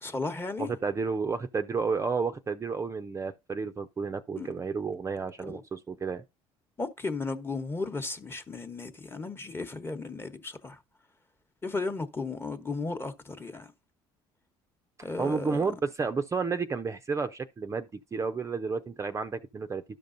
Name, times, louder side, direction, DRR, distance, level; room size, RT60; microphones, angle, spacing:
voice 1, 0.0-0.7 4.4-4.5 5.4-5.6 6.8-10.8 11.6-13.7 15.0-15.7, left 3 dB, 20° left, 1.0 m, -35 dB
voice 2, 0.6-6.2 15.2-19.8, right 4 dB, 25° right, 0.5 m, -31 dB
12.5 x 5.3 x 2.6 m
supercardioid pair, 95°, 12 cm